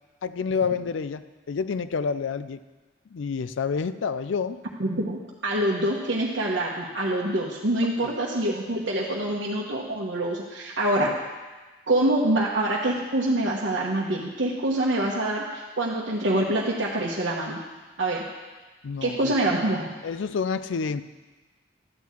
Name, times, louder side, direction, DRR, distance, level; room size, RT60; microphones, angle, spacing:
voice 1, 0.2-2.6 3.1-4.6 7.8-8.1 18.8-19.6 20.0-21.0, left 5 dB, 85° left, 14 dB, 0.4 m, -29 dB
voice 2, 4.8-11.1 11.9-17.6 18.0-18.2 19.0-19.9, right 1 dB, 75° right, -4 dB, 1.1 m, -25 dB
12.0 x 4.7 x 8.3 m, 1.3 s
head